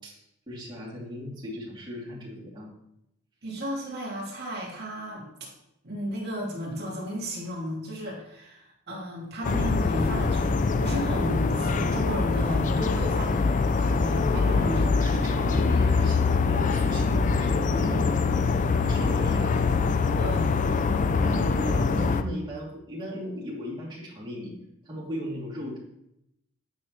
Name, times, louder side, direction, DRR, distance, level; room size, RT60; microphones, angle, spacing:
voice 1, 0.0-2.7 14.3-17.9 18.9-19.5 21.2-24.5 24.8-25.8, left 1 dB, 25° right, -8 dB, 2.7 m, -36 dB
voice 2, 3.4-5.3 5.8-10.5 10.7-13.5 13.8-14.9 17.7-18.3 20.2-20.5, equal, 55° right, -3 dB, 2.4 m, -34 dB
sound 1, 9.4-22.2, left 4 dB, 40° left, 0.4 m, -24 dB
9.2 x 6.3 x 3.1 m, 0.82 s
head